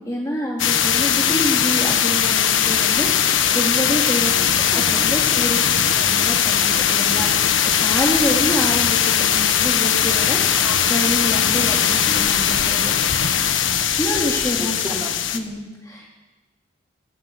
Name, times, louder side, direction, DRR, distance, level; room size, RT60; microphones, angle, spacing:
voice 1, 0.0-5.6 5.9-7.5 7.8-12.8 14.0-14.8 15.3-16.1, equal, 15° left, -3 dB, 2.8 m, -27 dB
sound 1, 0.6-15.4, left 9 dB, 85° left, 1.4 m, -19 dB
voice 2, 4.3-5.5 10.6-10.8 14.6-15.3, equal, 10° right, -2 dB, 4.3 m, -34 dB
19.0 x 17.5 x 8.1 m, 1.2 s
head